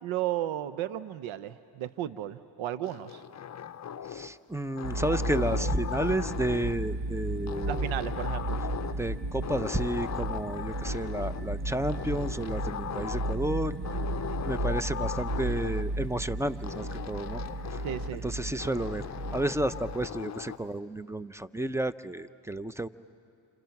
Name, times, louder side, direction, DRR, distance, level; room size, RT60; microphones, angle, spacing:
voice 1, 0.0-3.2 7.7-8.6 17.8-18.2, right 12 dB, 85° right, 14 dB, 0.8 m, -34 dB
sound 1, 2.8-4.4 4.8-6.8 7.5-9.1 9.4-11.4 11.9-13.5 13.8-15.9 16.6-18.2 18.6-20.6, left 9 dB, 35° left, 0.7 m, -38 dB
voice 2, 4.1-7.9 9.0-14.0 14.4-17.4 17.7-17.8 18.2-19.0 19.3-22.9, right 1 dB, 5° right, 14 dB, 0.7 m, -32 dB
sound 2, 4.8-20.1, right 2 dB, 60° right, 1.6 m, -34 dB
28.5 x 27.5 x 5.9 m, 2.4 s
cardioid pair, 65°, 47 cm